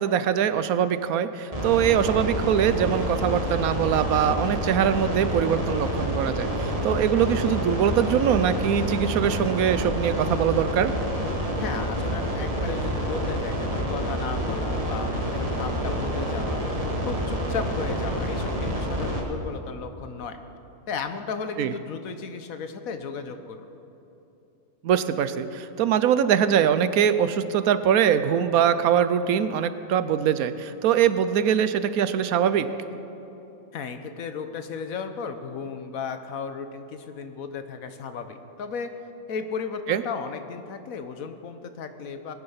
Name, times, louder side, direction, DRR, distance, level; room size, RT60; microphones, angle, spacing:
voice 1, 0.0-10.9 21.6-21.7 24.8-32.7 39.9-40.0, right 9 dB, 80° right, 12 dB, 1.1 m, -23 dB
sound 1, 1.5-19.2, equal, 25° right, 1.8 m, -28 dB
voice 2, 11.6-16.6 17.0-20.4 20.9-23.7 33.7-38.9 39.3-42.3, left 5 dB, 70° left, 8 dB, 1.3 m, -34 dB
19.5 x 9.8 x 5.7 m, 3.0 s
omnidirectional pair, 1.5 m